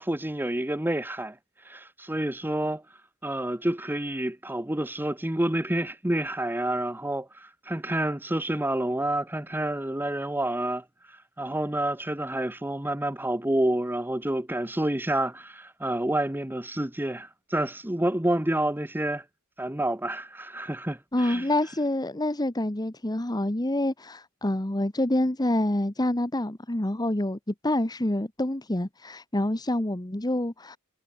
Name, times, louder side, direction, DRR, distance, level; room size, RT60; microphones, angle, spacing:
voice 1, 0.0-1.4 1.6-2.8 3.2-19.2 19.6-21.5, right 1 dB, 10° right, 1.1 m, -29 dB
voice 2, 21.1-30.8, left 1 dB, 20° left, 1.3 m, -27 dB
head